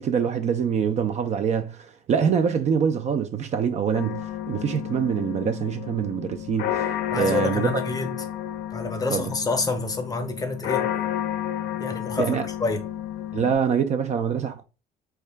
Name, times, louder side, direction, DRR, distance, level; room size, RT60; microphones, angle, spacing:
voice 1, 0.0-6.8 7.1-7.7 9.1-9.3 12.2-12.5 13.3-14.6, right 7 dB, 45° right, 0.4 m, -25 dB
sound 1, 3.9-13.5, left 11 dB, 65° left, 0.5 m, -31 dB
voice 2, 7.1-8.1 8.7-10.9 11.8-12.8, left 3 dB, 20° left, 0.7 m, -28 dB
3.5 x 2.3 x 3.3 m
cardioid pair, 110°, 17 cm